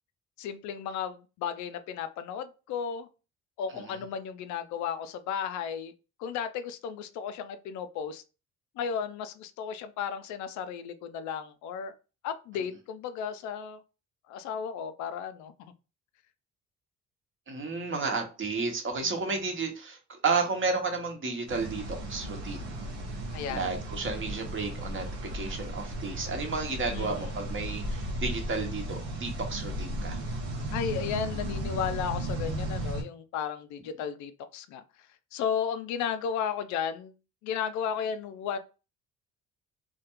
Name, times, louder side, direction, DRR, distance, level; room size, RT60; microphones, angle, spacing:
voice 1, 0.4-3.1 3.6-5.9 6.2-8.2 8.8-11.9 12.2-13.8 14.3-15.5 19.0-19.2 23.3-23.7 26.9-27.2 30.7-34.8 35.3-37.1 37.4-38.6, left 7 dB, 70° left, 11 dB, 0.4 m, -34 dB
voice 2, 17.5-22.7 23.5-25.1 25.3-30.2, right 4 dB, 40° right, 4 dB, 0.9 m, -32 dB
sound 1, 21.5-33.0, right 1 dB, 90° right, 0.8 m, -35 dB
2.3 x 2.1 x 2.9 m, 0.32 s
supercardioid pair, 65°, 30 cm